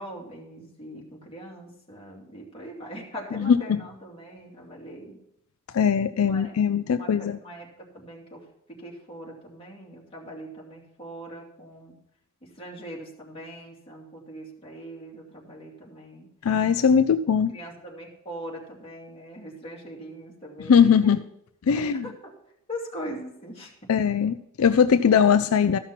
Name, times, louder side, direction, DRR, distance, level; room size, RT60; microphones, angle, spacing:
voice 1, 0.0-5.2 6.3-6.5 7.0-7.7 7.9-11.9 12.4-16.3 17.3-21.1 21.7-22.3 22.7-23.9, equal, 25° left, -3 dB, 2.6 m, -41 dB
voice 2, 3.4-3.8 5.7-7.4 16.4-17.5 20.7-21.2 21.7-22.1 23.9-25.8, left 7 dB, 75° left, 11 dB, 0.4 m, -20 dB
14.0 x 5.9 x 5.8 m, 0.75 s
head